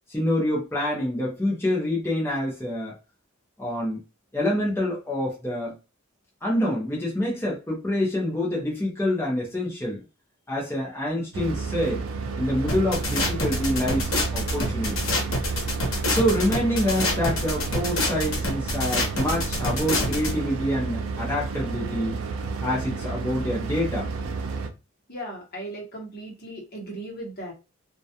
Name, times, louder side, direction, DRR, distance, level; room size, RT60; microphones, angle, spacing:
voice 1, 0.1-2.9 3.6-4.0 4.3-5.8 6.4-10.0 10.5-12.0 12.4-14.9 16.1-22.2 22.6-24.1, left 1 dB, 10° left, -4 dB, 0.6 m, -26 dB
sound 1, 11.3-24.7, right 4 dB, 90° right, 0.4 m, -31 dB
sound 2, 12.7-20.3, left 2 dB, 80° left, 0.8 m, -26 dB
voice 2, 25.1-27.5, right 1 dB, 50° left, -1 dB, 0.9 m, -37 dB
2.3 x 2.2 x 2.7 m, 0.29 s
head